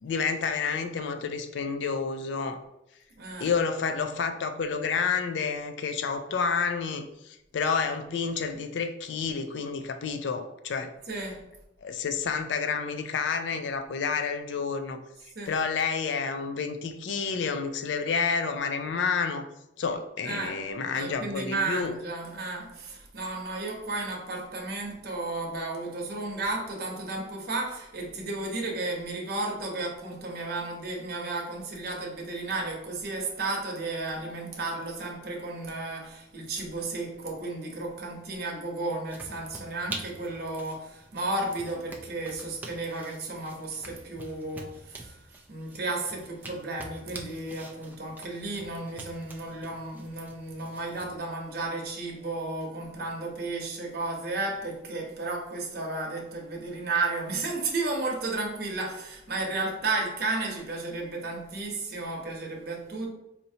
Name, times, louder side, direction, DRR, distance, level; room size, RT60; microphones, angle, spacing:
voice 1, 0.0-2.6 3.4-10.9 11.8-15.0 15.5-19.4 19.8-21.9, left 5 dB, 70° left, 8 dB, 0.4 m, -29 dB
voice 2, 3.2-3.5 11.1-11.4 15.3-15.5 20.2-20.5 20.9-63.1, right 2 dB, 55° right, -1 dB, 0.9 m, -33 dB
sound 1, 39.1-51.1, right 2 dB, 10° right, 0.3 m, -46 dB
4.2 x 2.7 x 2.7 m, 0.86 s
head